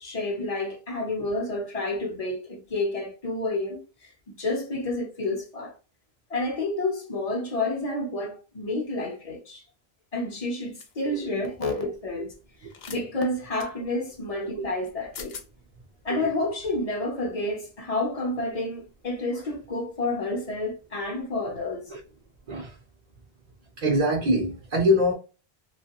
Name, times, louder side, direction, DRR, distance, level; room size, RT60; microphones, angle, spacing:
voice 1, 0.0-5.7 6.3-9.6 10.1-12.3 12.9-15.4 16.0-21.9, left 2 dB, 40° left, 0.8 m, -30 dB
sound 1, 10.8-11.0 12.7-13.0 13.6-13.7 14.8-14.9 15.1-15.5, left 6 dB, 75° left, 0.8 m, -41 dB
voice 2, 11.1-11.4 14.6-14.7 16.1-16.2 21.9-22.0 22.5-22.7 23.8-25.1, equal, 45° right, 0.7 m, -24 dB
2.9 x 2.3 x 2.9 m
omnidirectional pair, 1.0 m